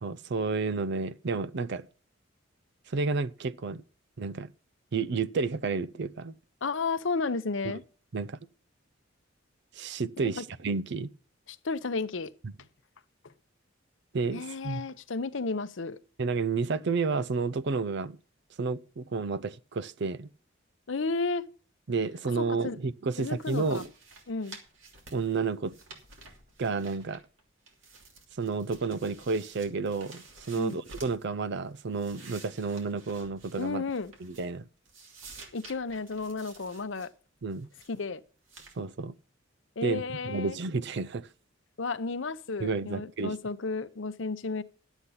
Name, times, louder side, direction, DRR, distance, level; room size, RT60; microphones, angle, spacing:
voice 1, 0.0-1.9 2.9-3.8 4.2-4.5 4.9-6.3 7.6-7.8 8.1-8.4 9.8-11.1 12.4-12.5 14.1-14.9 16.2-18.2 18.6-20.3 21.9-23.9 25.1-25.7 26.6-27.2 28.4-33.8 34.2-34.7 37.4-37.7 38.8-39.1 39.8-41.3 42.6-43.3, right 4 dB, 60° right, 0.6 m, -31 dB
voice 2, 6.6-7.8 10.2-10.4 11.5-12.3 14.3-16.0 20.9-21.4 22.4-22.8 23.2-23.8 24.3-24.6 30.5-30.8 33.6-34.1 35.5-37.1 37.9-38.2 39.8-40.6 41.8-44.6, left 4 dB, 70° left, 0.7 m, -33 dB
sound 1, 23.1-27.4 27.7-31.3 31.7-34.6 34.9-37.1 37.5-38.0 38.5-38.8, right 3 dB, 80° right, 2.9 m, -52 dB
12.0 x 8.1 x 5.6 m
head